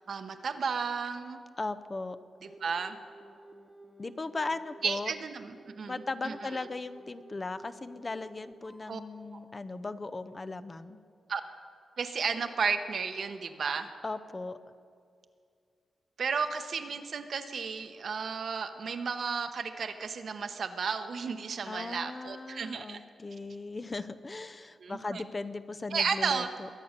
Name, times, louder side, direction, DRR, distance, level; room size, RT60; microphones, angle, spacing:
voice 1, 0.1-1.5 2.4-3.0 4.8-5.9 6.2-6.3 8.9-9.0 11.3-11.4 12.0-13.9 16.2-23.0 24.8-25.2 25.9-26.5, right 5 dB, 65° right, 8 dB, 1.0 m, -33 dB
voice 2, 1.6-2.2 4.0-5.1 5.9-11.0 14.0-14.6 21.7-26.7, left 3 dB, 30° left, 11 dB, 0.6 m, -37 dB
sound 1, 2.4-9.0 10.8-10.9, right 1 dB, 5° right, 1.1 m, -53 dB
22.0 x 8.5 x 6.6 m, 2.3 s
cardioid pair, 100°, 0 cm